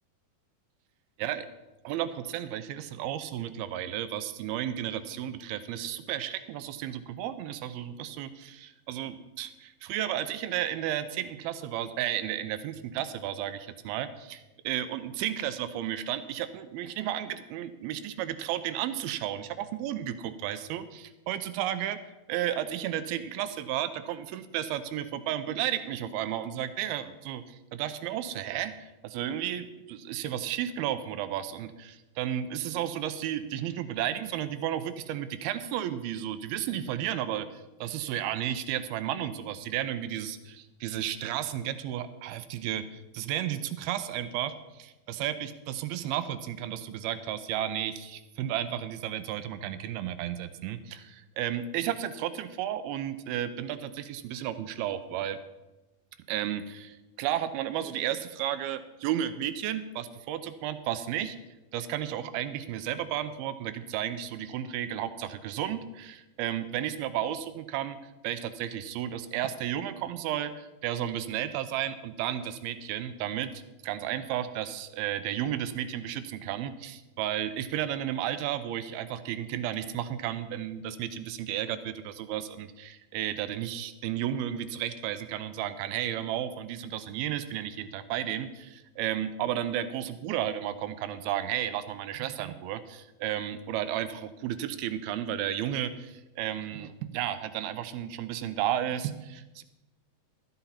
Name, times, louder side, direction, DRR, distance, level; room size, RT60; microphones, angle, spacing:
voice 1, 1.8-22.0 22.3-55.4 56.3-61.4 61.7-68.0 68.2-99.6, right 11 dB, 85° right, 11 dB, 2.5 m, -33 dB
13.5 x 9.7 x 4.2 m, 1.0 s
omnidirectional pair, 4.4 m